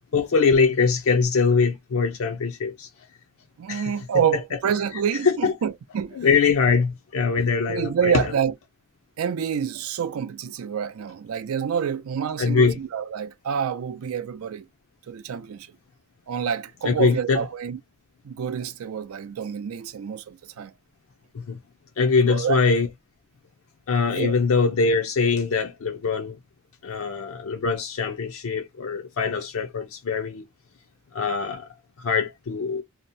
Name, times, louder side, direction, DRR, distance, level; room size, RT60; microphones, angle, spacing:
voice 1, 0.1-2.9 3.7-3.8 5.3-5.5 6.2-8.2 12.4-12.8 16.8-17.4 21.3-21.6 22.0-22.9 23.9-26.4 26.8-30.4 31.1-31.7 32.0-32.8, left 5 dB, 75° left, 0.4 m, -22 dB
voice 2, 3.6-6.2 7.7-8.5 9.2-14.7 15.1-15.7 16.3-17.8 18.2-20.7 22.2-22.6 24.1-24.3, right 7 dB, 85° right, 0.4 m, -27 dB
2.7 x 2.0 x 2.6 m
head